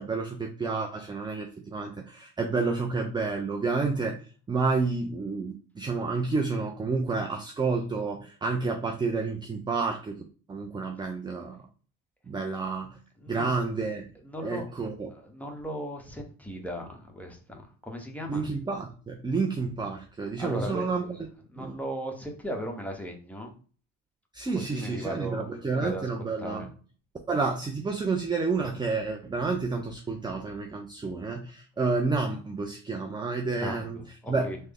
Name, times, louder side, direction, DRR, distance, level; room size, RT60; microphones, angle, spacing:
voice 1, 0.0-4.2 4.5-10.2 10.5-11.6 12.3-13.0 13.3-14.0 14.4-15.1 18.3-21.2 21.6-21.7 24.3-26.7 27.3-34.0 34.3-34.5, right 4 dB, 15° right, 3 dB, 0.3 m, -30 dB
voice 2, 13.2-13.5 14.2-14.7 15.1-18.5 20.4-20.9 21.5-23.5 24.5-25.4 25.7-26.0 26.4-26.7 33.5-34.6, equal, 5° left, 1 dB, 0.8 m, -37 dB
3.2 x 2.1 x 3.5 m, 0.39 s
supercardioid pair, 80°, 38 cm